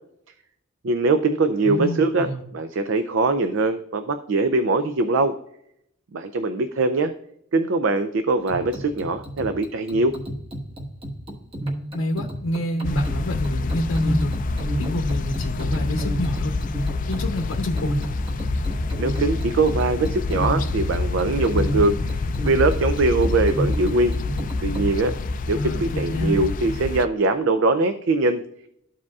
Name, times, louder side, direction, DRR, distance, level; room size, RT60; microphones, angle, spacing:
voice 1, 0.8-2.3 2.5-5.3 6.1-7.1 7.5-10.2 19.0-24.1 24.6-25.1 25.5-28.4, right 3 dB, 60° right, 9 dB, 0.4 m, -22 dB
voice 2, 1.6-2.4 11.9-14.4 14.8-16.6 17.1-18.0 25.5-26.4, left 1 dB, 80° left, 2 dB, 0.8 m, -27 dB
sound 1, 8.4-24.9, right 1 dB, 25° right, 1.4 m, -32 dB
sound 2, 12.8-27.1, left 3 dB, 40° left, 0.4 m, -27 dB
13.5 x 4.9 x 2.4 m, 0.74 s
head